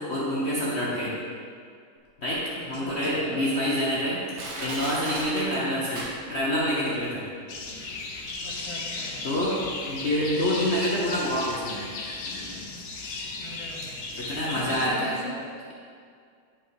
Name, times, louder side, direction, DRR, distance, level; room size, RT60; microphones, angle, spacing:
voice 1, 0.1-1.2 2.2-7.3 8.9-11.9 14.2-15.2, equal, 40° left, -7 dB, 1.1 m, -27 dB
voice 2, 2.5-3.6 5.4-5.9 8.4-9.3 13.4-15.6, left 1 dB, 20° left, -3 dB, 1.0 m, -41 dB
Crushing, 4.4-6.6 6.9-7.0, right 1 dB, 70° right, 2.2 m, -36 dB
sound 1, 7.5-14.9, left 3 dB, 70° left, 1.8 m, -36 dB
10.0 x 5.5 x 4.7 m, 2.2 s
omnidirectional pair, 2.2 m